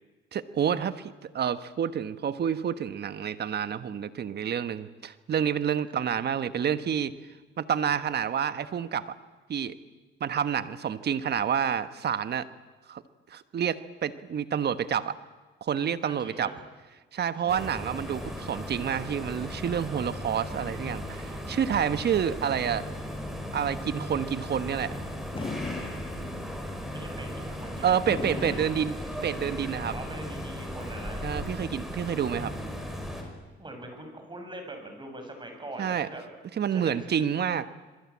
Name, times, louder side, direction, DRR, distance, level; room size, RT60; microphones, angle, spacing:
voice 1, 0.3-7.1 7.6-9.1 9.5-9.7 10.2-12.5 12.9-13.0 13.3-15.1 15.6-16.5 17.1-22.9 23.5-25.0 27.8-29.0 29.2-29.9 31.2-32.5 35.8-36.1 36.6-37.7, right 8 dB, 55° right, 12 dB, 1.3 m, -28 dB
voice 2, 16.0-16.7 17.3-17.5 26.3-26.4 26.9-28.0 28.3-28.6 29.9-31.3 31.9-32.1 33.6-36.2 36.7-37.0, right 1 dB, 25° right, 4 dB, 7.6 m, -42 dB
sound 1, 17.5-33.2, equal, ahead, 6.1 m, -37 dB
Fireworks, 25.3-26.6 28.1-29.6, left 3 dB, 25° left, 5.8 m, -37 dB
26.5 x 23.0 x 8.7 m, 1.3 s
cardioid pair, 90°, 20 cm